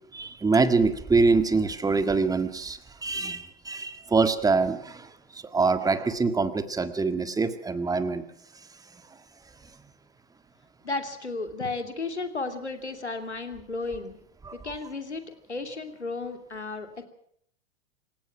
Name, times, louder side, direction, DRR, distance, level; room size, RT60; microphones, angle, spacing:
voice 1, 0.1-8.2 9.1-9.2 14.4-14.6, right 4 dB, 10° right, 11 dB, 1.7 m, -25 dB
voice 2, 10.8-14.2 14.5-16.9, left 3 dB, 85° left, 7 dB, 2.9 m, -34 dB
27.5 x 16.5 x 6.0 m, 0.65 s
figure-of-eight pair, 90°, 33 cm